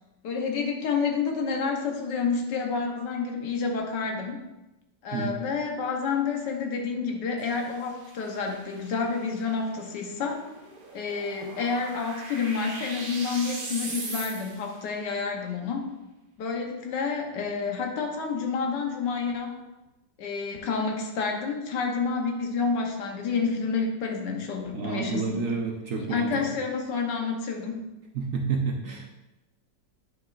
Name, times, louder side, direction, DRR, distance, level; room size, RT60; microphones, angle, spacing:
voice 1, 0.2-4.4 5.0-10.4 10.9-15.9 16.4-19.6 20.2-25.5 26.0-27.9, left 5 dB, 75° left, 3 dB, 1.6 m, -29 dB
sound 1, 7.4-14.8, right 2 dB, 35° right, 1.0 m, -40 dB
voice 2, 24.7-26.3 28.2-29.1, right 5 dB, 60° right, 1 dB, 0.9 m, -29 dB
9.4 x 6.0 x 2.5 m, 1.0 s
omnidirectional pair, 1.9 m